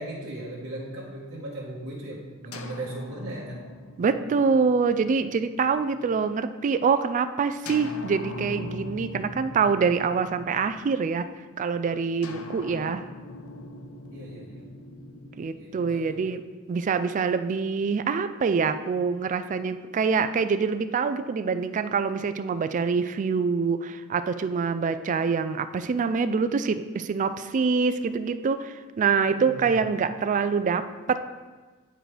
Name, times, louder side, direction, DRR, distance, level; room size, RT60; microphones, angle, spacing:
voice 1, 0.0-3.6 12.3-12.4 14.1-14.6 15.5-16.2 29.3-29.8, right 1 dB, 60° right, -7 dB, 1.3 m, -38 dB
sound 1, 2.5-6.3 7.7-11.2 12.2-16.4, left 2 dB, 75° left, 0.6 m, -41 dB
voice 2, 4.0-11.3 11.6-13.0 15.4-31.2, right 5 dB, 35° right, 11 dB, 0.3 m, -25 dB
10.0 x 4.4 x 3.3 m, 1.3 s
head